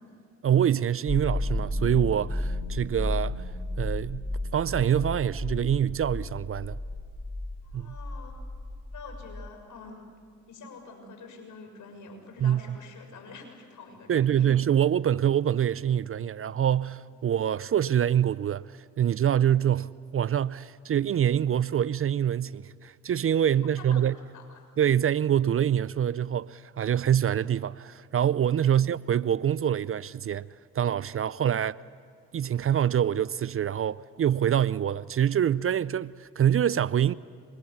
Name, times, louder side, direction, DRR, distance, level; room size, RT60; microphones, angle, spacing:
voice 1, 0.4-3.4 3.8-4.2 4.5-6.8 7.7-7.9 12.4-12.6 14.1-24.1 24.8-30.5 30.7-31.8 32.3-37.1, right 9 dB, 40° right, 0.5 m, -25 dB
sound 1, 1.1-9.5, left 1 dB, 5° left, 3.9 m, -33 dB
voice 2, 7.6-8.4 8.9-10.1 10.5-14.6 23.6-24.7 28.6-28.8 31.3-31.5, left 4 dB, 65° left, 6.5 m, -47 dB
28.5 x 25.0 x 7.1 m
supercardioid pair, 55°, 33 cm